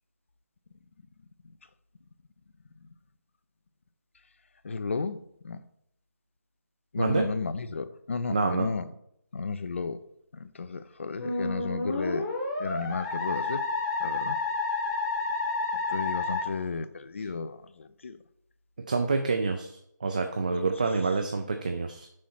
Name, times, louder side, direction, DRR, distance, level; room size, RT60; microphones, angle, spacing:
voice 1, 4.6-5.2 5.4-5.6 6.9-8.8 9.3-10.0 10.4-12.2 12.6-13.6 14.0-14.4 15.9-18.2, left 4 dB, 40° left, 0.5 m, -33 dB
voice 2, 7.0-7.3 8.3-8.7 18.9-22.1, right 4 dB, 25° right, 0.4 m, -27 dB
Musical instrument, 11.2-16.4, left 3 dB, 15° left, 1.0 m, -30 dB
6.4 x 4.2 x 5.8 m
figure-of-eight pair, 170°, 10 cm